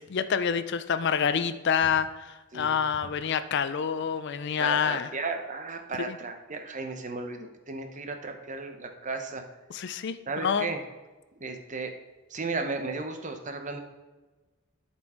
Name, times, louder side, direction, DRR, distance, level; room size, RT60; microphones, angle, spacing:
voice 1, 0.0-5.1 6.1-6.2 9.7-10.2 10.4-10.7, left 7 dB, 60° left, 12 dB, 0.5 m, -27 dB
voice 2, 4.6-9.4 10.3-10.8 11.3-11.9 12.3-13.8, right 3 dB, 40° right, 5 dB, 0.9 m, -34 dB
12.0 x 4.4 x 4.4 m, 1.2 s
head